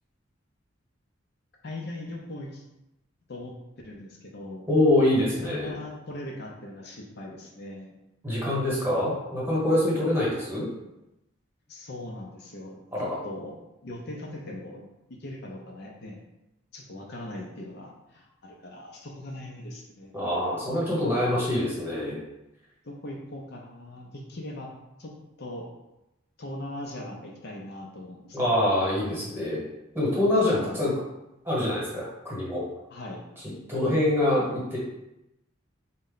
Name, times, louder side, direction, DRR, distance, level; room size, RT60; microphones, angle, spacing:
voice 1, 1.6-2.6 3.3-3.5 3.8-4.7 5.4-7.9 11.7-13.5 13.8-16.2 16.7-20.9 22.8-24.7 25.0-25.1 25.4-25.7 26.4-29.1 32.9-33.2, left 1 dB, 55° left, -1 dB, 0.6 m, -40 dB
voice 2, 4.7-5.7 8.2-10.7 12.9-13.2 20.1-22.2 28.3-29.7 29.9-30.9 31.4-32.6 33.7-34.8, left 1 dB, 10° right, -6 dB, 1.2 m, -25 dB
4.0 x 2.1 x 3.8 m, 0.92 s
head